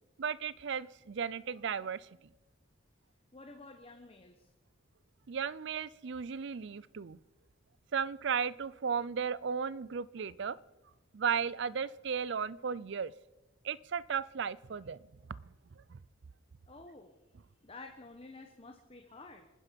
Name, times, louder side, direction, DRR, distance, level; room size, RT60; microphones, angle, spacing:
voice 1, 0.2-2.1 5.3-7.2 7.9-10.6 11.1-13.1 13.6-15.0 15.8-16.0, right 6 dB, 55° right, 20 dB, 0.4 m, -35 dB
voice 2, 3.3-4.5 16.7-17.1 17.6-19.5, left 3 dB, 30° left, 4 dB, 1.0 m, -51 dB
27.5 x 9.9 x 5.2 m, 1.1 s
head